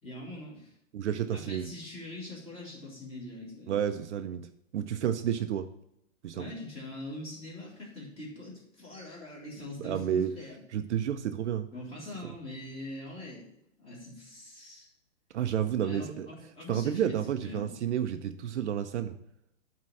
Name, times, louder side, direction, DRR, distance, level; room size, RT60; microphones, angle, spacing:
voice 1, 0.0-0.8 1.3-4.0 6.3-10.6 11.7-13.5 13.8-14.9 15.8-17.7, left 1 dB, 15° left, -5 dB, 2.6 m, -43 dB
voice 2, 0.9-1.7 3.7-4.5 4.7-5.7 6.2-6.5 9.8-10.3 10.7-11.7 15.3-16.3 16.7-19.2, right 9 dB, 60° right, 8 dB, 0.6 m, -30 dB
8.8 x 3.7 x 7.0 m, 0.80 s
hypercardioid pair, 150°, 39 cm